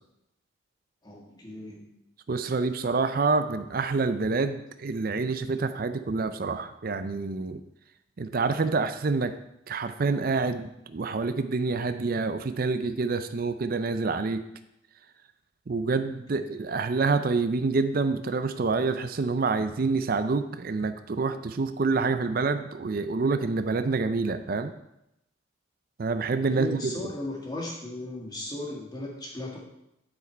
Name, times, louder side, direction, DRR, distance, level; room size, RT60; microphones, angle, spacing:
voice 1, 1.0-1.8 16.1-16.5 26.4-29.6, left 2 dB, 20° left, -2 dB, 1.8 m, -37 dB
voice 2, 2.3-7.6 8.2-9.3 9.7-14.4 15.7-24.7 26.0-26.9, right 4 dB, 45° right, 10 dB, 0.4 m, -27 dB
11.5 x 4.9 x 4.5 m, 0.84 s
head